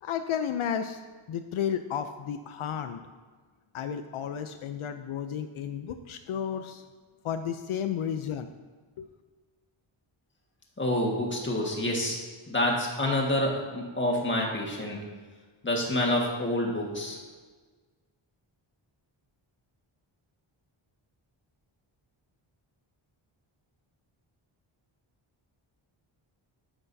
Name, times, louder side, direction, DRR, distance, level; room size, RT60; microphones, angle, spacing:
voice 1, 0.0-1.0 1.3-3.0 3.7-6.8 7.2-8.5 9.0-9.1, left 8 dB, 75° left, 8 dB, 0.6 m, -32 dB
voice 2, 10.8-12.2 12.5-15.0 15.6-17.2, left 1 dB, 25° left, -1 dB, 1.6 m, -28 dB
9.6 x 7.9 x 2.7 m, 1.4 s
wide cardioid pair, 115°, 50 cm